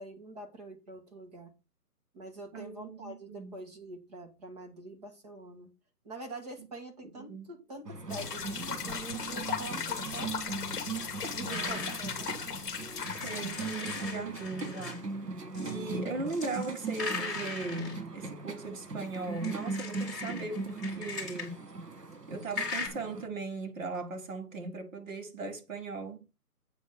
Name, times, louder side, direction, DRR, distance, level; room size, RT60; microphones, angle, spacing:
voice 1, 0.0-1.5 2.1-5.7 6.0-10.3 10.9-12.4, right 2 dB, 25° right, 1.4 m, -45 dB
voice 2, 2.5-3.5 7.2-7.5 11.4-11.9 13.2-15.0 15.6-21.7 22.3-26.3, right 3 dB, 55° right, 2.0 m, -38 dB
sound 1, 7.9-23.3, right 4 dB, 85° right, 2.0 m, -39 dB
sound 2, 8.1-14.0, left 7 dB, 30° left, 1.6 m, -37 dB
sound 3, 11.5-12.1 12.9-15.0 15.5-16.0 16.3-18.0 19.1-21.5 22.5-22.9, left 4 dB, ahead, 2.5 m, -39 dB
8.3 x 4.0 x 6.6 m
hypercardioid pair, 160°, 47 cm